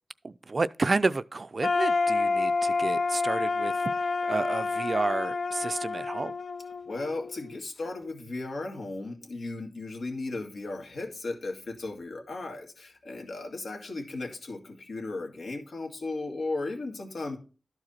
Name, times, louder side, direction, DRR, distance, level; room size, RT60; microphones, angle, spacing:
voice 1, 0.2-3.8 4.2-6.3, right 3 dB, 45° right, 0.4 m, -30 dB
sound 1, 1.6-7.5, left 4 dB, 70° left, 0.4 m, -28 dB
voice 2, 6.8-17.4, left 2 dB, 90° left, 2.0 m, -36 dB
12.5 x 4.8 x 4.3 m
wide cardioid pair, 130°, 0 cm